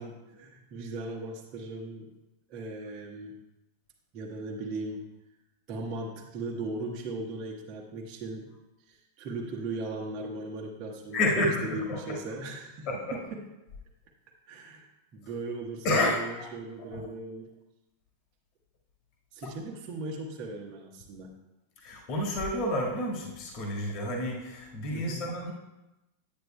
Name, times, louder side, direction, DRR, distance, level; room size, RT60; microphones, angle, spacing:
voice 1, 0.0-2.1 2.5-3.4 4.1-5.0 5.7-8.5 8.9-13.5 14.5-14.9 15.1-17.5 19.3-21.3 24.9-25.2, right 2 dB, 40° right, -2 dB, 1.2 m, -38 dB
voice 2, 11.1-12.2 12.9-13.2 15.8-16.5 16.9-17.1 21.8-25.5, left 1 dB, 40° left, 0 dB, 1.7 m, -30 dB
9.5 x 9.1 x 2.2 m, 0.97 s
figure-of-eight pair, 90°, 0 cm